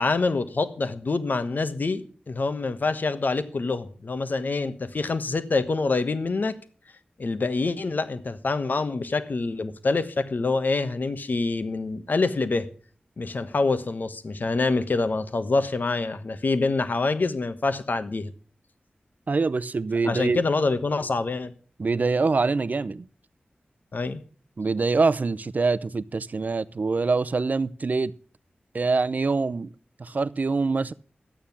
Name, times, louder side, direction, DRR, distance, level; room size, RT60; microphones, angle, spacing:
voice 1, 0.0-6.6 7.2-12.7 13.2-18.3 20.0-21.5 23.9-24.2, left 3 dB, 60° left, 1.3 m, -26 dB
voice 2, 19.3-20.4 21.8-23.0 24.6-28.1 28.7-29.7 30.0-30.9, right 4 dB, 50° right, 0.6 m, -24 dB
13.0 x 8.9 x 7.1 m
wide cardioid pair, 90°, 3 cm